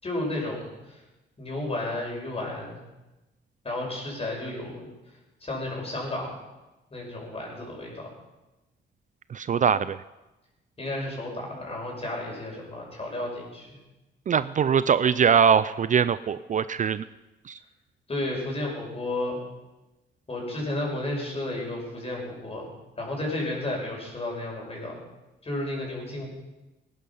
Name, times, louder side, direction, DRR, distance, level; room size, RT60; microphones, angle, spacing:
voice 1, 0.0-1.0 1.4-2.8 3.6-4.9 5.4-6.3 6.9-8.1 10.8-13.8 18.1-19.4 20.3-22.7 23.0-25.0 25.4-26.3, left 1 dB, 30° left, -1 dB, 6.2 m, -32 dB
voice 2, 9.3-10.0 14.3-17.0 17.5-17.6, right 7 dB, 40° right, 15 dB, 0.4 m, -22 dB
19.0 x 10.5 x 5.6 m, 1.0 s
cardioid pair, 90°, 20 cm